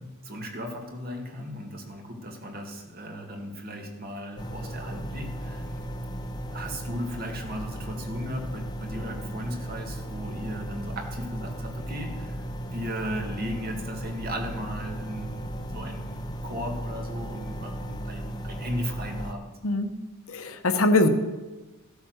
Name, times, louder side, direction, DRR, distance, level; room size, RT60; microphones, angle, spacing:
voice 1, 0.0-5.9 6.5-19.5, equal, 40° right, 2 dB, 2.1 m, -36 dB
sound 1, 4.4-19.3, right 1 dB, 20° left, 0.8 m, -36 dB
voice 2, 20.3-21.1, left 2 dB, 70° left, 8 dB, 1.1 m, -22 dB
14.0 x 8.4 x 6.4 m, 1.2 s
head